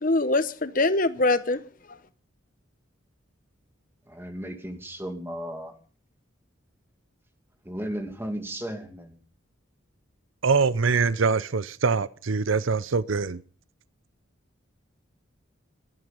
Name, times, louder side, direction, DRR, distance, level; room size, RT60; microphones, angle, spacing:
voice 1, 0.0-1.6 1.9-2.0, left 2 dB, 40° left, 0.9 m, -23 dB
voice 2, 4.1-5.7 7.6-9.2, equal, 10° right, 2.4 m, -35 dB
voice 3, 10.4-13.4, right 4 dB, 75° right, 0.7 m, -24 dB
22.0 x 11.0 x 5.3 m
head